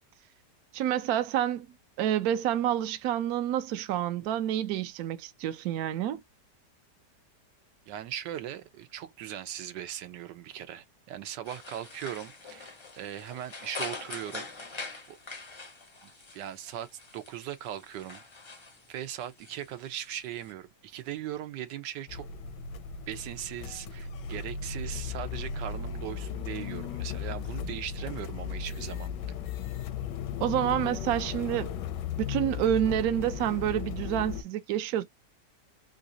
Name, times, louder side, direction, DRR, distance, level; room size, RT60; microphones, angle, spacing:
voice 1, 0.7-1.7 2.0-6.2 30.4-31.7 32.2-35.0, right 11 dB, 70° right, 1.0 m, -28 dB
voice 2, 7.9-14.5 15.1-15.2 16.0-18.2 18.9-22.3 23.1-29.1, right 11 dB, 85° right, 1.3 m, -39 dB
sound 1, 11.4-20.5, left 3 dB, 50° left, 0.3 m, -44 dB
sound 2, 22.1-34.4, left 7 dB, 85° left, 1.2 m, -36 dB
3.9 x 2.5 x 2.6 m
omnidirectional pair, 1.8 m